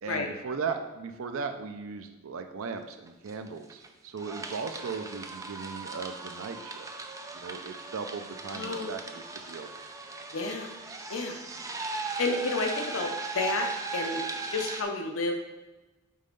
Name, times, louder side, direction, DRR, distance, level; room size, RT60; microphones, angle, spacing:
voice 1, 0.0-6.9 7.3-9.7, right 5 dB, 70° right, 7 dB, 0.5 m, -37 dB
sound 1, 2.7-2.8 3.1-3.9 4.2-14.8, right 4 dB, 15° right, 0.4 m, -38 dB
voice 2, 8.5-8.9 10.3-10.7 11.1-11.4 12.2-14.2 14.5-15.4, left 3 dB, 70° left, 3 dB, 0.7 m, -31 dB
5.5 x 4.2 x 5.3 m, 1.1 s
head